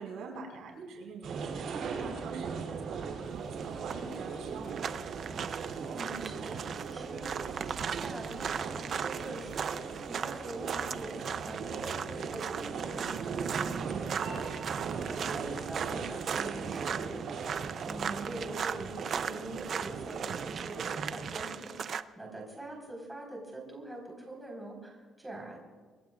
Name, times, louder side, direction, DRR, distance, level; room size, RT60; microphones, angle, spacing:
voice 1, 0.0-4.9 14.7-15.5, right 4 dB, 75° right, 1 dB, 4.8 m, -45 dB
sound 1, 1.2-21.1, right 5 dB, 60° right, 2.9 m, -39 dB
sound 2, 3.2-22.0, right 7 dB, 45° right, 0.5 m, -38 dB
voice 2, 5.5-14.8 15.1-17.5 17.8-25.6, right 2 dB, 10° right, -1 dB, 4.4 m, -44 dB
25.5 x 21.0 x 2.4 m, 1.4 s
cardioid pair, 155°, 0 cm